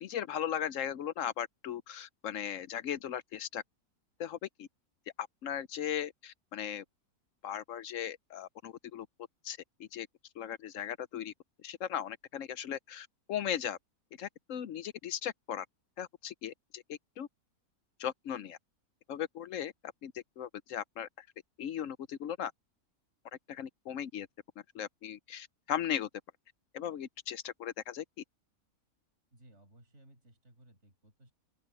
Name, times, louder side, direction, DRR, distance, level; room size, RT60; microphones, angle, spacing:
voice 1, 0.0-3.6 4.2-4.7 5.2-6.8 7.4-9.1 9.4-10.1 10.4-11.3 11.6-13.8 14.2-15.7 16.0-17.3 18.0-18.6 19.1-19.7 20.0-21.3 21.6-22.5 23.5-24.3 24.7-26.1 26.7-28.2, left 9 dB, 65° left, 1.0 m, -37 dB
voice 2, 29.3-31.3, right 1 dB, 50° right, 7.1 m, -60 dB
open air
omnidirectional pair, 1.6 m